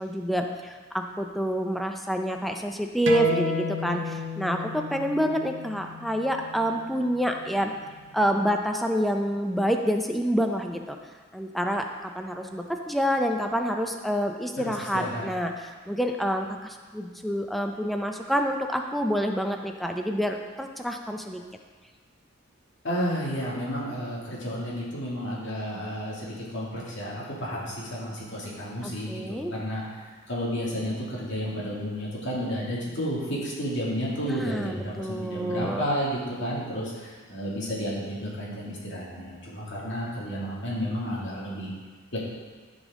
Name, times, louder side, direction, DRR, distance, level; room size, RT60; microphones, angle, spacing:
voice 1, 0.0-7.7 8.1-11.0 11.3-21.4 28.8-29.5 34.2-35.9, equal, ahead, 3 dB, 0.5 m, -28 dB
sound 1, 3.1-8.2, left 2 dB, 60° right, 0.9 m, -34 dB
voice 2, 14.6-15.3 22.8-29.8 30.3-41.7 42.1-42.2, equal, 60° left, -6 dB, 2.4 m, -31 dB
14.0 x 5.3 x 3.7 m, 1.5 s
head